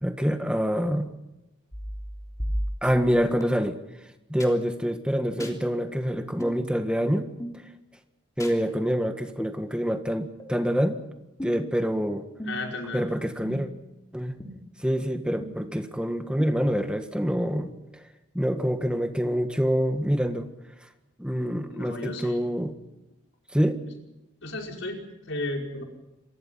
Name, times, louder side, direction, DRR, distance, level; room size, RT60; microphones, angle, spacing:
voice 1, 0.0-1.1 2.8-3.8 4.3-7.3 8.4-11.0 11.4-12.2 12.9-13.7 14.1-14.4 14.8-18.0 18.3-20.5 21.2-22.7 23.5-23.8, equal, 5° right, 6 dB, 1.7 m, -26 dB
sound 1, 1.7-3.4 4.4-4.5 5.4-5.6 6.4-6.6 7.4-7.6 8.4-8.6 9.4-9.6 10.4-10.5 11.4-11.7 12.4-12.8 13.4-13.8 14.4-14.5 15.4-15.5 16.4-16.5, equal, 15° left, 3.3 m, -35 dB
voice 2, 12.4-13.1 21.7-22.5 24.4-25.8, left 2 dB, 80° left, 1 dB, 5.2 m, -34 dB
27.5 x 23.5 x 5.7 m, 0.98 s
head